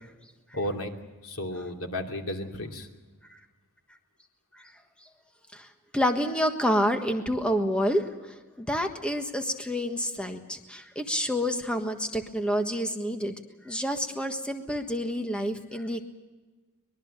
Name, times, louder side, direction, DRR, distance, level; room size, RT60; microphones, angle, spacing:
voice 1, 0.5-0.9 1.2-2.9, left 1 dB, 85° left, 3 dB, 2.9 m, -33 dB
voice 2, 5.9-13.3 13.6-16.0, equal, 5° left, 5 dB, 1.4 m, -28 dB
24.0 x 21.5 x 6.7 m, 1.3 s
head